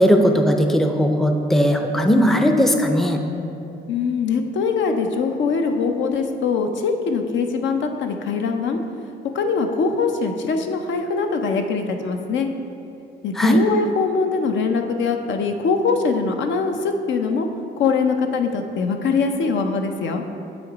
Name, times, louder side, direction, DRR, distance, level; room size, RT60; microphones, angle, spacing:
voice 1, 0.0-3.2 13.3-13.6, equal, ahead, 4 dB, 0.5 m, -17 dB
voice 2, 3.9-8.8 9.3-12.5 13.2-17.5 17.8-20.2, left 4 dB, 70° left, 5 dB, 0.6 m, -22 dB
8.1 x 3.0 x 5.0 m, 2.7 s
cardioid pair, 90°, 20 cm